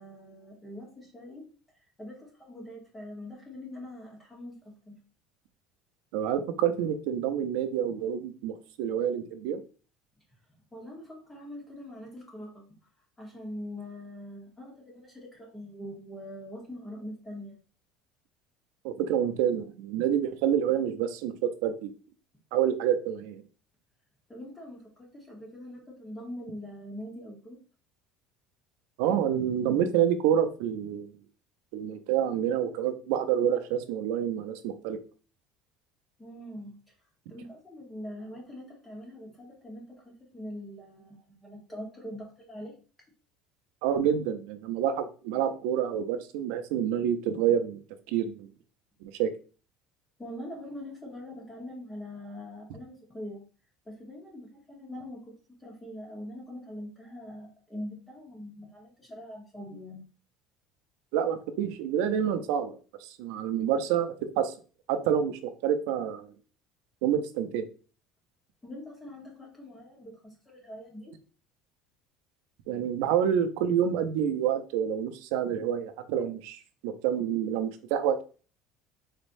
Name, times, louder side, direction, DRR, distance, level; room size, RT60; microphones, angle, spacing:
voice 1, 0.0-1.5 2.0-5.0 10.7-12.6 13.2-17.5 24.3-27.6 36.2-36.7 37.3-42.7 50.2-53.4 53.8-55.3 55.6-60.0 68.6-71.1, left 1 dB, 10° left, -3 dB, 1.1 m, -43 dB
voice 2, 6.1-9.6 18.8-21.9 22.5-23.4 29.0-31.2 31.7-35.0 43.8-47.8 48.1-48.5 49.0-49.3 61.1-64.5 64.9-66.3 67.0-67.7 72.7-78.2, right 9 dB, 80° right, 8 dB, 0.6 m, -28 dB
4.1 x 3.2 x 2.6 m, 0.37 s
cardioid pair, 130°, 0 cm